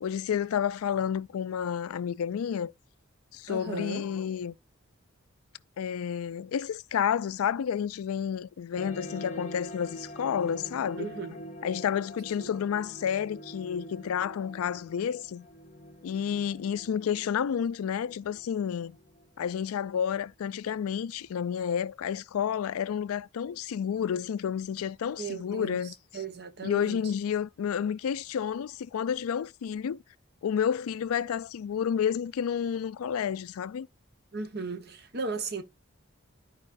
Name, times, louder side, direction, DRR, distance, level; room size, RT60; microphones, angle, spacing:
voice 1, 0.0-2.7 3.3-4.5 5.8-11.1 11.6-15.5 16.0-18.9 19.4-25.9 26.6-30.0 30.4-33.9, left 8 dB, 90° left, 0.4 m, -30 dB
voice 2, 3.5-4.1 11.0-11.4 12.4-12.5 25.2-27.1 34.3-35.6, right 4 dB, 50° right, 1.0 m, -36 dB
sound 1, 8.8-19.8, equal, 35° left, 0.6 m, -45 dB
12.5 x 4.9 x 2.5 m
head